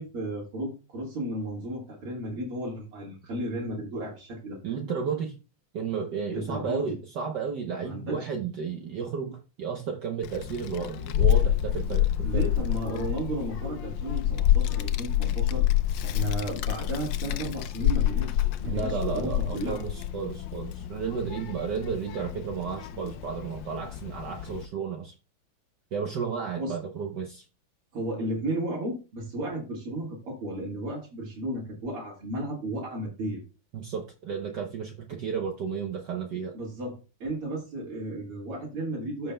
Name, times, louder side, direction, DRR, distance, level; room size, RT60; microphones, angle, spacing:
voice 1, 0.0-4.6 6.3-7.0 7.8-8.3 12.2-15.6 16.0-19.8 26.5-26.8 27.9-33.4 36.5-39.3, right 1 dB, 80° right, -4 dB, 2.8 m, -34 dB
voice 2, 4.6-5.3 5.7-12.5 18.7-25.1 25.9-27.4 33.7-36.5, right 6 dB, 60° right, 3 dB, 1.3 m, -33 dB
Child speech kid speaking, 10.2-24.7, left 11 dB, 75° left, 1.1 m, -28 dB
14.0 x 5.5 x 2.2 m, 0.32 s
omnidirectional pair, 2.4 m